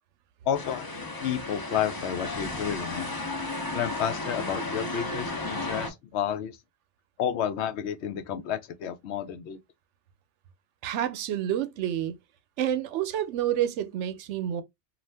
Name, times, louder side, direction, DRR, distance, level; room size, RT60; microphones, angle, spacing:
voice 1, 0.5-0.9 1.2-3.1 3.7-6.6 7.2-9.6, left 9 dB, 75° left, 0.8 m, -31 dB
sound 1, 0.5-5.9, left 2 dB, 25° left, 0.5 m, -34 dB
voice 2, 10.8-12.1 12.6-14.6, right 11 dB, 90° right, 0.9 m, -28 dB
2.5 x 2.4 x 3.3 m
omnidirectional pair, 1.2 m